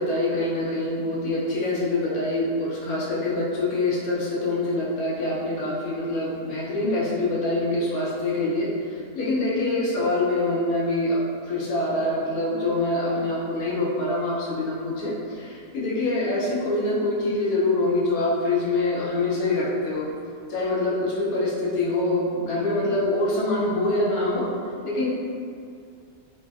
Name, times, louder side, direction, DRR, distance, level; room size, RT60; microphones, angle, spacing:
voice 1, 0.0-11.2 11.5-20.1 20.5-24.5 24.8-25.1, left 2 dB, 70° left, -6 dB, 0.9 m, -25 dB
3.3 x 2.0 x 2.3 m, 2.3 s
omnidirectional pair, 1.8 m